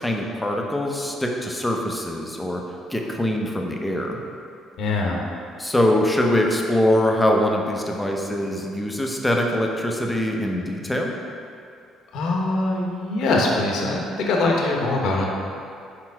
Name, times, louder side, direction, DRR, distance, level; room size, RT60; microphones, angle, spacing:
voice 1, 0.0-2.6 2.9-4.2 5.6-11.1, left 1 dB, 10° left, 1 dB, 0.8 m, -23 dB
voice 2, 4.8-5.2 12.1-15.3, left 2 dB, 70° left, -1 dB, 0.9 m, -22 dB
4.8 x 4.3 x 4.7 m, 2.5 s
supercardioid pair, 65°, 0 cm